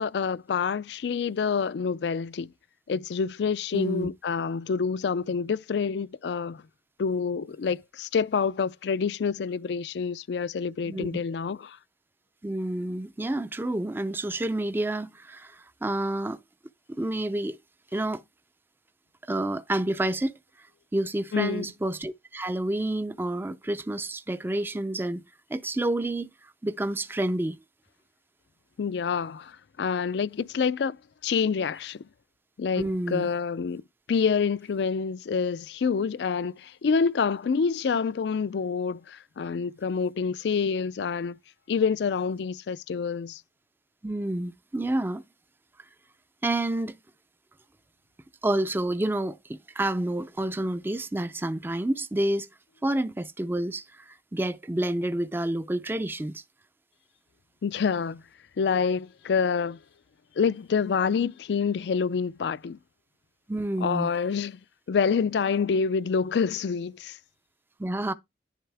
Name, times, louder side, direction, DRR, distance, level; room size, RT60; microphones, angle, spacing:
voice 1, 0.0-2.5 2.9-6.6 7.0-11.8 21.3-21.7 28.8-31.0 31.2-32.0 32.6-33.8 34.1-41.4 41.7-43.4 57.6-58.2 58.6-59.8 60.4-62.8 63.8-64.6 64.9-67.2, left 5 dB, 70° left, 0.4 m, -27 dB
voice 2, 3.7-4.1 10.9-11.1 12.4-16.4 16.9-17.6 17.9-18.2 19.3-20.4 20.9-25.2 25.5-26.3 26.6-27.6 32.8-33.3 44.0-45.2 46.4-46.9 48.4-52.5 52.8-56.4 63.5-64.1 67.8-68.1, right 1 dB, 10° right, 0.4 m, -29 dB
10.5 x 4.6 x 3.3 m
head